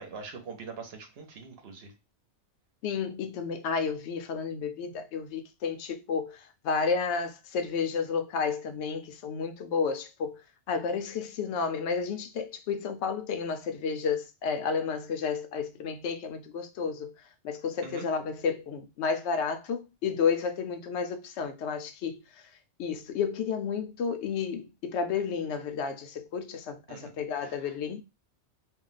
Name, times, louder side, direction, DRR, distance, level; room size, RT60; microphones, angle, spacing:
voice 1, 0.0-1.9 17.8-18.1 26.9-27.1 27.4-27.7, right 4 dB, 60° right, 0.9 m, -43 dB
voice 2, 2.8-10.4 10.7-17.1 17.4-22.2 22.8-28.0, left 6 dB, 75° left, 0.8 m, -31 dB
2.5 x 2.1 x 3.9 m
omnidirectional pair, 1.2 m